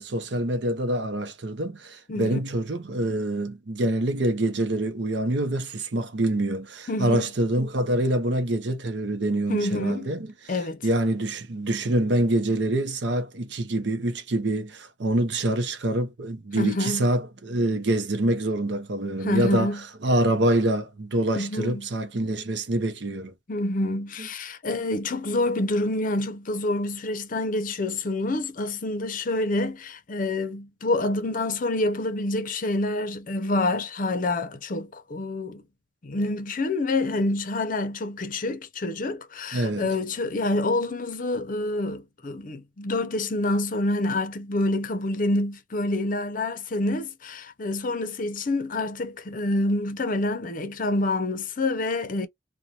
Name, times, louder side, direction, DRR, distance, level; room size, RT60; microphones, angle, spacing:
voice 1, 0.0-10.5 10.8-19.7 20.0-23.3 24.2-24.3 39.5-39.9, right 1 dB, 65° right, 0.7 m, -26 dB
voice 2, 2.1-2.4 6.9-7.3 9.5-10.1 10.5-10.9 16.5-17.1 19.2-19.8 21.4-21.9 23.5-35.6 36.0-52.3, left 2 dB, 45° left, 0.6 m, -27 dB
2.5 x 2.2 x 2.8 m
head